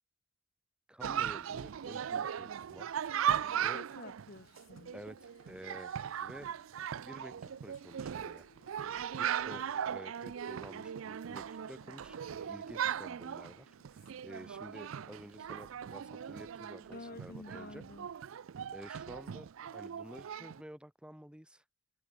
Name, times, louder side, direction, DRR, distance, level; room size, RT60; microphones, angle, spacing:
voice 1, 0.9-2.9 3.6-3.8 4.9-5.9 6.2-6.5 7.0-8.5 9.1-17.8 18.7-21.6, equal, 5° right, 2.0 m, -51 dB
Chatter, 1.0-20.6, right 9 dB, 85° right, 0.4 m, -38 dB
voice 2, 3.7-4.9 16.9-18.1, left 2 dB, 50° left, 1.2 m, -49 dB
sound 1, 4.0-17.7, left 2 dB, 80° left, 7.9 m, -64 dB
head